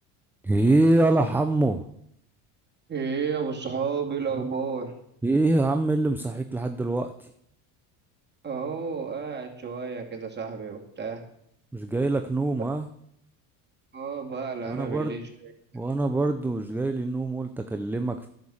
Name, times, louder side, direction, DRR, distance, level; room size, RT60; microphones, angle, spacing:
voice 1, 0.4-1.9 4.4-4.5 5.2-7.3 11.7-12.9 14.6-15.2 15.7-18.3, right 2 dB, 5° right, 6 dB, 0.4 m, -24 dB
voice 2, 2.9-4.9 8.4-11.2 12.6-12.8 13.9-15.9, right 5 dB, 20° right, 1 dB, 2.6 m, -32 dB
11.0 x 6.6 x 7.2 m, 0.74 s
supercardioid pair, 105°, 46 cm